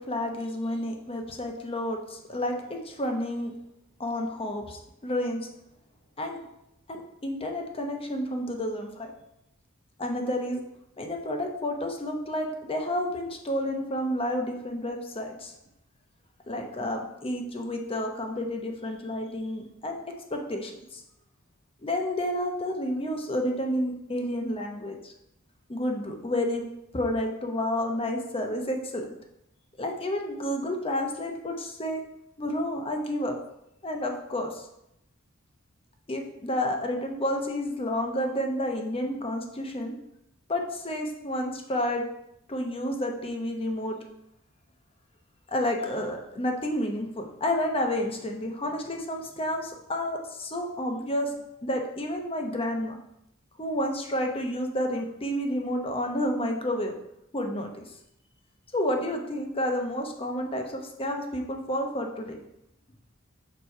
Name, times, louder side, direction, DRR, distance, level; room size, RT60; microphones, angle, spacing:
voice 1, 0.0-3.5 4.0-5.5 6.2-6.4 6.9-9.1 10.0-10.6 11.0-15.5 16.5-20.0 20.3-21.0 21.8-25.1 25.7-26.6 26.9-29.1 29.8-32.0 32.4-33.4 33.8-34.7 36.1-39.9 40.5-42.1 42.5-44.0 45.5-51.3 51.6-53.0 53.6-56.9 57.3-57.8 58.7-62.4, left 1 dB, 25° left, 2 dB, 0.8 m, -30 dB
7.0 x 3.0 x 4.7 m, 0.82 s
head